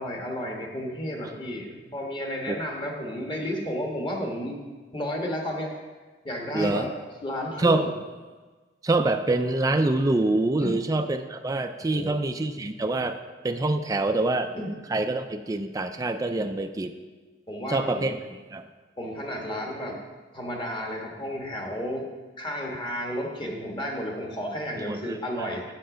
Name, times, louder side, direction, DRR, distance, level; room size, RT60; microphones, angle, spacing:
voice 1, 0.0-4.6 4.9-5.7 6.2-6.9 7.2-7.9 10.6-10.7 11.9-12.2 14.5-14.7 17.5-18.1 19.0-20.0 20.3-22.1 22.4-25.6, equal, 30° left, 0 dB, 1.4 m, -32 dB
voice 2, 6.5-6.9 7.6-7.8 8.8-13.2 13.4-14.5 14.9-17.0 17.7-18.6 24.9-25.5, right 2 dB, 20° right, 6 dB, 0.4 m, -25 dB
7.8 x 6.8 x 5.1 m, 1.3 s
head